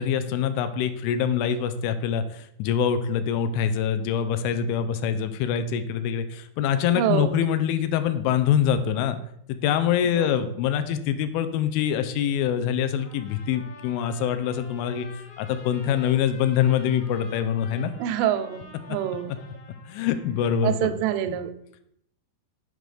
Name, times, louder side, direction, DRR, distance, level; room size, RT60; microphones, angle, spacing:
voice 1, 0.0-9.2 9.6-15.1 15.4-17.9 19.9-20.9 21.3-21.4, left 8 dB, 85° left, 10 dB, 3.0 m, -24 dB
voice 2, 7.0-7.4 10.0-10.4 18.0-19.4 20.6-21.5, right 11 dB, 90° right, 11 dB, 3.0 m, -26 dB
Trumpet, 13.0-20.4, left 3 dB, 65° left, 2.1 m, -48 dB
7.6 x 5.2 x 3.2 m, 0.72 s
omnidirectional pair, 5.4 m